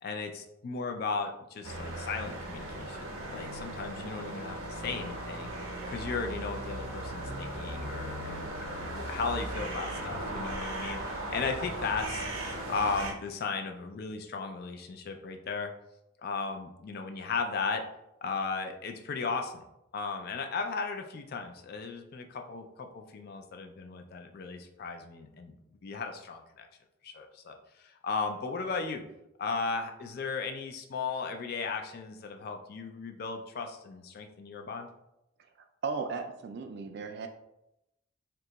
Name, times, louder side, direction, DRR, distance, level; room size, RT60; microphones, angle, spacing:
voice 1, 0.0-5.5 5.9-12.3 12.7-15.7 16.2-17.8 18.2-19.6 19.9-25.5 25.8-26.7 27.0-29.0 29.4-34.9, left 4 dB, 45° left, 5 dB, 0.3 m, -36 dB
sound 1, 1.6-13.1, right 1 dB, 80° right, 0.7 m, -37 dB
voice 2, 35.8-37.3, right 4 dB, 50° right, 5 dB, 0.3 m, -35 dB
2.7 x 2.2 x 3.9 m, 0.87 s
head